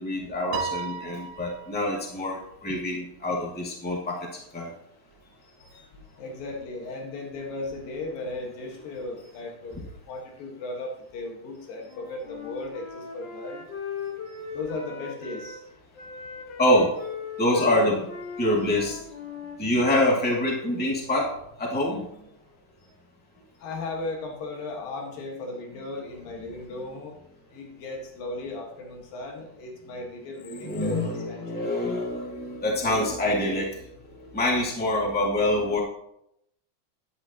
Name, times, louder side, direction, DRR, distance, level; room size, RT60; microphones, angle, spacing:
voice 1, 0.0-4.2 4.5-4.7 16.6-16.9 17.4-18.1 18.4-19.0 19.6-21.3 21.6-22.1 30.5-35.8, left 1 dB, 5° left, -3 dB, 1.9 m, -25 dB
Piano, 0.5-2.1, right 5 dB, 85° right, 2.3 m, -34 dB
voice 2, 6.2-13.6 14.5-15.6 23.6-27.1 27.5-31.7, left 2 dB, 90° left, 1 dB, 3.6 m, -36 dB
Wind instrument woodwind instrument, 11.8-15.6 15.9-20.5, left 6 dB, 55° left, 1.3 m, -38 dB
12.0 x 11.0 x 3.0 m, 0.76 s
omnidirectional pair, 3.9 m